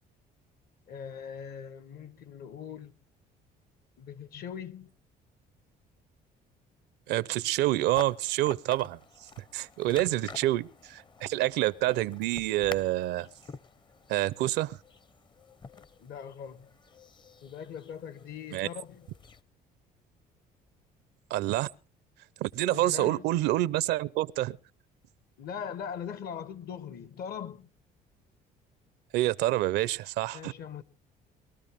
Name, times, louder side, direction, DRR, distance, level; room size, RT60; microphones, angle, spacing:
voice 1, 0.9-2.9 4.0-4.9 9.9-10.3 16.0-16.8 17.4-19.1 22.7-23.3 25.4-27.7 30.3-30.8, left 7 dB, 65° left, 1.3 m, -41 dB
voice 2, 7.1-13.3 14.1-14.8 18.5-18.7 21.3-21.7 22.4-24.6 29.1-30.5, right 16 dB, 85° right, 0.7 m, -28 dB
sound 1, 7.7-19.4, left 5 dB, 30° left, 0.7 m, -49 dB
22.0 x 13.0 x 3.5 m
cardioid pair, 110°, 17 cm